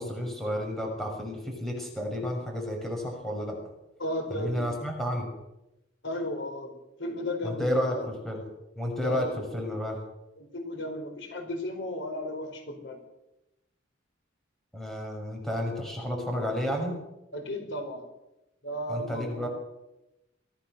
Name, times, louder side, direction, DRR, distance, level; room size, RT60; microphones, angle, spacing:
voice 1, 0.0-3.6 4.3-5.3 7.4-8.4 8.8-9.3 9.5-10.0 14.7-17.0 18.9-19.5, equal, ahead, 1 dB, 6.4 m, -31 dB
voice 2, 4.0-4.6 6.0-7.6 7.9-8.1 9.0-9.3 10.4-13.0 17.3-18.1 18.6-19.5, left 1 dB, 65° left, 5 dB, 4.7 m, -34 dB
24.5 x 17.0 x 6.8 m, 0.92 s
head